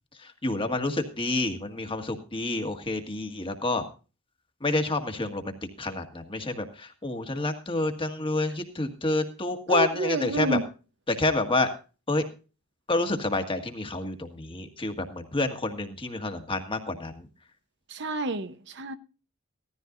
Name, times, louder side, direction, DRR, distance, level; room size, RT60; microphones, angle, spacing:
voice 1, 0.2-3.8 4.6-10.6 11.1-11.7 12.1-12.2 12.9-17.3, left 2 dB, 25° left, 1.8 m, -28 dB
voice 2, 9.7-10.6 17.9-19.0, right 2 dB, 55° right, 1.0 m, -29 dB
17.0 x 13.5 x 2.6 m
head